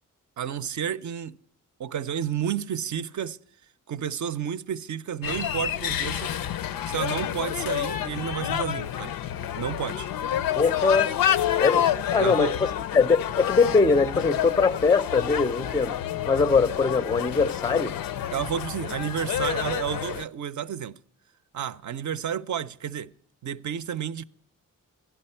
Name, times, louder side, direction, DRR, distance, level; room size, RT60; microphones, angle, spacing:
voice 1, 0.4-1.4 1.8-3.4 3.9-6.4 6.9-9.2 9.6-10.1 12.1-12.5 18.3-21.0 21.5-23.1 23.4-24.3, right 9 dB, 60° right, 0.5 m, -31 dB
sound 1, 5.2-20.3, left 10 dB, 80° left, 0.5 m, -29 dB
voice 2, 10.6-11.2 11.6-16.0 16.3-18.0, left 4 dB, 15° left, 0.4 m, -22 dB
11.5 x 11.0 x 4.4 m
cardioid pair, 60°, 34 cm